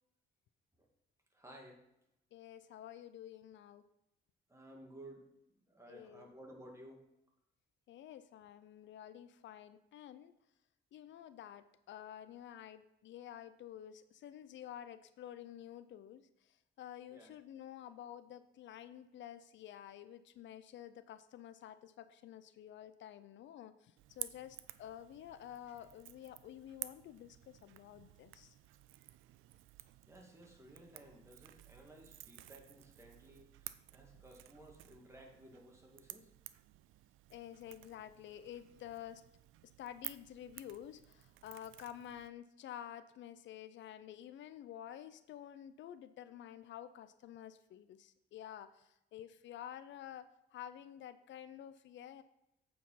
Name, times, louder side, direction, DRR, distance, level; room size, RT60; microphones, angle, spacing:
voice 1, 1.3-1.8 4.5-7.0 17.1-17.3 30.0-36.3, right 1 dB, 15° right, 0 dB, 2.1 m, -56 dB
voice 2, 2.3-3.9 5.9-6.3 7.9-10.3 10.9-28.6 34.1-34.2 37.3-39.2 39.8-52.2, left 11 dB, 70° left, 13 dB, 0.5 m, -50 dB
Crackle / Crack, 24.0-42.3, right 15 dB, 85° right, 0.4 m, -53 dB
8.3 x 4.7 x 5.6 m, 0.86 s
cardioid pair, 90°, 20 cm